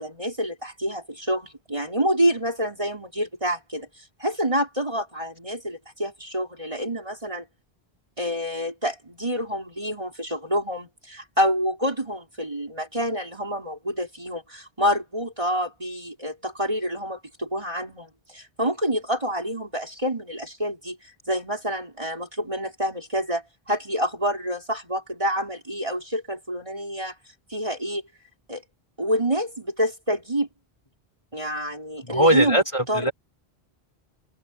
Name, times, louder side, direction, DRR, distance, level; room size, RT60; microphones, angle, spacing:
voice 1, 0.0-7.4 8.2-27.1 27.5-28.0 28.5-28.6 29.0-30.5 31.3-33.1, equal, 30° right, 5.1 m, -27 dB
voice 2, 32.0-33.1, right 1 dB, 30° left, 5.3 m, -21 dB
open air
omnidirectional pair, 1.0 m